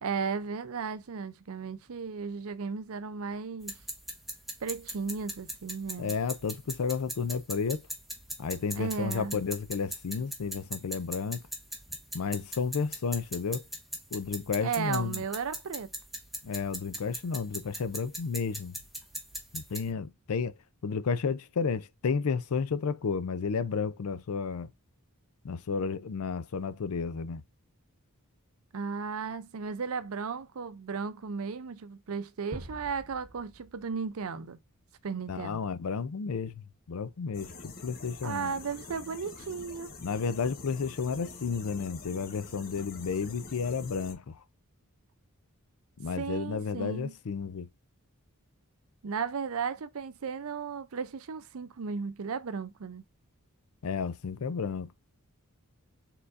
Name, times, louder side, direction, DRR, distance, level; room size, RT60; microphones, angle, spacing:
voice 1, 0.0-3.8 4.6-6.2 8.7-9.4 14.6-15.9 28.7-34.6 35.0-35.6 38.2-39.9 46.2-47.1 49.0-53.0, right 5 dB, 65° right, 0.5 m, -35 dB
sound 1, 3.6-19.9, right 1 dB, ahead, 1.1 m, -41 dB
voice 2, 6.0-7.8 8.4-11.4 12.1-13.6 14.1-15.2 16.4-18.8 19.5-20.5 20.8-24.7 25.4-27.4 35.3-38.5 40.0-44.4 46.0-47.7 53.8-54.9, left 5 dB, 70° left, 0.5 m, -32 dB
sound 2, 32.5-34.5, right 1 dB, 40° right, 1.0 m, -46 dB
sound 3, 37.3-44.1, left 3 dB, 40° left, 1.1 m, -46 dB
4.6 x 3.8 x 2.5 m
head